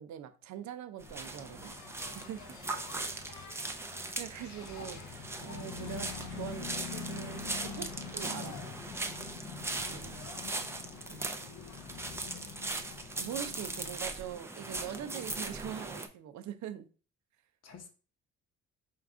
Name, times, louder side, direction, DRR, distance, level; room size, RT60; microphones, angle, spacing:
voice 1, 0.0-1.7 2.0-2.4 3.5-3.6 4.1-8.5 9.7-10.4 11.1-11.3 12.6-12.8 13.2-16.9, right 10 dB, 70° right, 0.5 m, -43 dB
Engine, 1.0-14.0, left 7 dB, 75° left, 0.6 m, -46 dB
sound 1, 1.0-16.1, right 2 dB, 10° right, 0.5 m, -40 dB
voice 2, 11.8-12.4 14.6-15.1 17.6-17.9, left 6 dB, 55° left, 0.9 m, -52 dB
4.5 x 2.4 x 3.5 m
cardioid pair, 90°, 30 cm